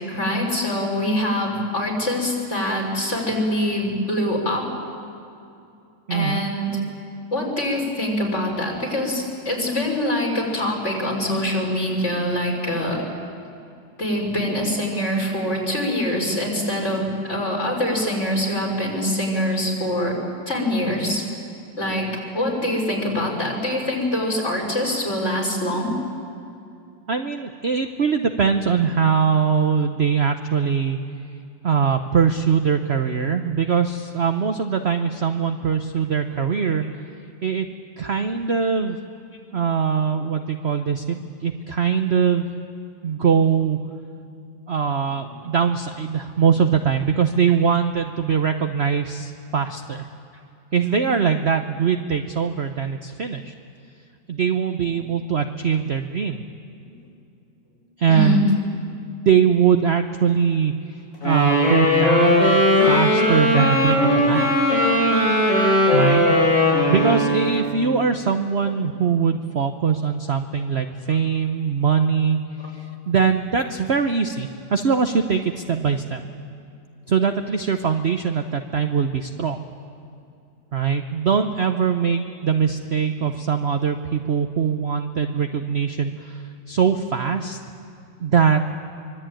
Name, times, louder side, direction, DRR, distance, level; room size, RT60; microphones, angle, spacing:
voice 1, 0.1-4.7 6.1-6.8 7.3-13.0 14.0-20.2 20.5-21.2 21.8-22.1 22.3-25.9 36.4-36.8 45.4-45.5 56.8-57.0 58.1-58.4 62.5-62.6, left 1 dB, 35° left, -1 dB, 5.5 m, -24 dB
voice 2, 6.1-6.4 27.1-31.0 31.6-36.8 37.4-37.7 38.0-39.0 39.5-42.5 43.0-43.8 44.7-50.1 50.7-53.5 54.3-56.4 58.0-58.6 59.2-60.7 61.2-64.5 65.9-66.3 66.9-72.4 72.7-76.2 77.1-79.6 80.7-87.6 88.2-88.7, right 6 dB, 45° right, 7 dB, 0.9 m, -22 dB
Wind instrument woodwind instrument, 61.2-67.7, left 1 dB, 80° left, 7.7 m, -18 dB
24.5 x 24.5 x 9.0 m, 2.6 s
omnidirectional pair, 2.0 m